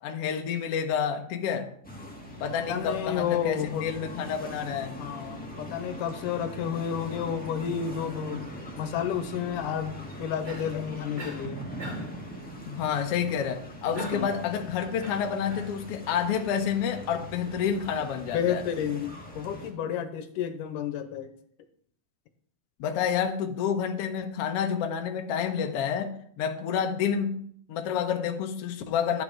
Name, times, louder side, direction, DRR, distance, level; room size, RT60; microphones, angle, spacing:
voice 1, 0.0-1.7 2.4-5.0 12.7-18.6 22.8-29.2, left 7 dB, 65° left, 4 dB, 1.6 m, -29 dB
sound 1, 1.8-19.7, equal, 5° left, 1.0 m, -42 dB
voice 2, 2.7-3.9 5.0-8.5 8.8-11.6 13.5-13.6 13.9-14.4 18.3-21.3, left 8 dB, 80° left, 9 dB, 2.5 m, -31 dB
Cough, 10.4-10.8 11.2-11.5 11.8-12.2 13.9-14.4 15.0-15.7, equal, 20° right, 2.4 m, -38 dB
12.0 x 8.7 x 4.7 m, 0.64 s
omnidirectional pair, 3.8 m